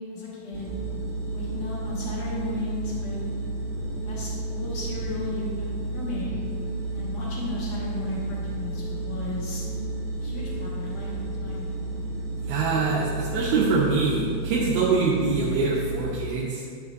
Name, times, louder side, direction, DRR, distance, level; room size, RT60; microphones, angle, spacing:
voice 1, 0.1-0.7 1.3-3.2 3.9-6.4 6.9-9.6 10.2-11.1 11.4-11.7, left 2 dB, 60° left, -6 dB, 1.0 m, -35 dB
sound 1, 0.5-16.0, right 2 dB, 50° right, 3.0 m, -32 dB
voice 2, 12.5-16.6, right 4 dB, 75° right, -5 dB, 2.7 m, -24 dB
10.5 x 8.1 x 2.7 m, 2.1 s
omnidirectional pair, 4.5 m